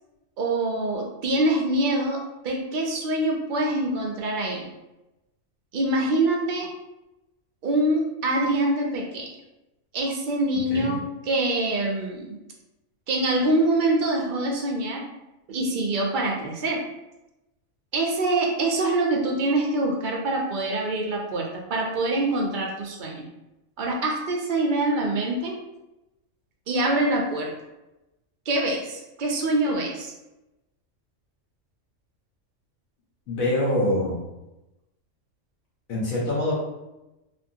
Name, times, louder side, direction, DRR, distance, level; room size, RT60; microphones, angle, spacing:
voice 1, 0.4-2.2 2.4-4.7 5.7-6.7 7.6-9.3 9.9-12.4 13.1-15.0 15.5-16.8 17.9-23.3 23.8-25.5 26.7-27.5 28.5-30.1, right 2 dB, 60° right, -1 dB, 0.5 m, -25 dB
voice 2, 33.3-34.2 35.9-36.5, left 1 dB, 90° left, -6 dB, 1.3 m, -24 dB
2.9 x 2.5 x 2.6 m, 0.97 s
omnidirectional pair, 1.4 m